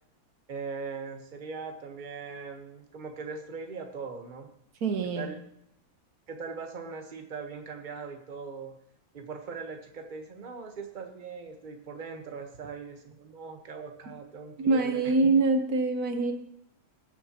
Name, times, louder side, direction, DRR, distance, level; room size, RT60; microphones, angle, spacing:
voice 1, 0.5-4.5 5.1-5.4 6.3-8.7 9.1-15.3, right 5 dB, 35° right, 4 dB, 1.2 m, -40 dB
voice 2, 4.8-5.3 14.6-16.3, right 3 dB, 80° right, 6 dB, 1.6 m, -25 dB
20.0 x 7.3 x 2.9 m, 0.72 s
omnidirectional pair, 1.6 m